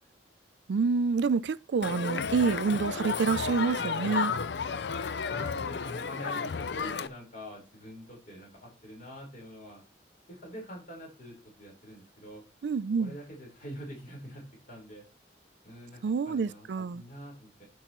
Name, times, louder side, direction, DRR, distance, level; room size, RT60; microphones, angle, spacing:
voice 1, 0.7-4.3 12.6-13.1 16.0-17.0, right 5 dB, 75° right, 0.4 m, -28 dB
Crowd, 1.8-7.1, left 5 dB, 70° left, 0.5 m, -32 dB
voice 2, 5.3-9.8 10.3-12.4 13.0-15.0 15.6-17.6, equal, 50° left, 4.3 m, -45 dB
13.0 x 5.6 x 3.0 m
head